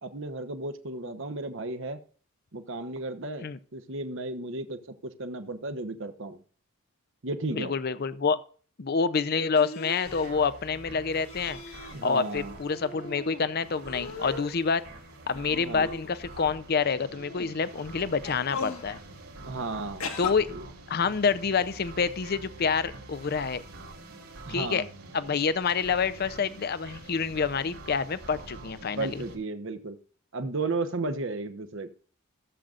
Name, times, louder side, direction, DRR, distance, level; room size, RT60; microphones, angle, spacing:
voice 1, 0.0-2.0 2.5-6.4 7.2-7.7 11.9-12.5 15.6-15.9 19.4-20.1 20.5-20.6 24.5-24.9 29.0-30.0 30.3-31.9, right 2 dB, 60° right, 9 dB, 0.9 m, -34 dB
voice 2, 7.5-8.4 8.8-11.6 12.0-14.8 15.3-19.0 20.2-20.5 20.9-23.6 24.5-24.8 25.1-29.2, left 5 dB, 45° left, 15 dB, 0.5 m, -27 dB
sound 1, 9.5-10.3 11.2-12.0 12.3-13.4 13.8-14.6 15.3-16.4 17.1-17.5 18.2-18.9 20.0-20.3, left 4 dB, 75° left, 1.6 m, -39 dB
sound 2, 10.0-29.4, right 2 dB, 75° right, 3.0 m, -46 dB
15.5 x 7.6 x 2.5 m, 0.42 s
head